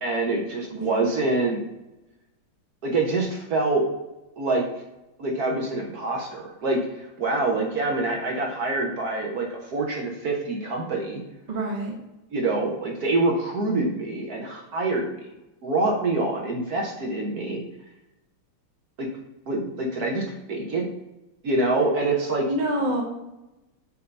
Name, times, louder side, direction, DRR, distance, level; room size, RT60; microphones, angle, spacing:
voice 1, 0.0-1.6 2.8-3.8 4.4-4.6 5.2-11.2 12.3-15.3 15.6-17.6 19.0-19.1 19.5-20.9 21.4-22.4, right 2 dB, 60° right, 0 dB, 1.1 m, -26 dB
voice 2, 0.7-1.0 11.5-12.0 22.5-23.0, right 1 dB, 40° right, 0 dB, 0.6 m, -27 dB
6.6 x 2.7 x 5.3 m, 0.98 s
omnidirectional pair, 2.3 m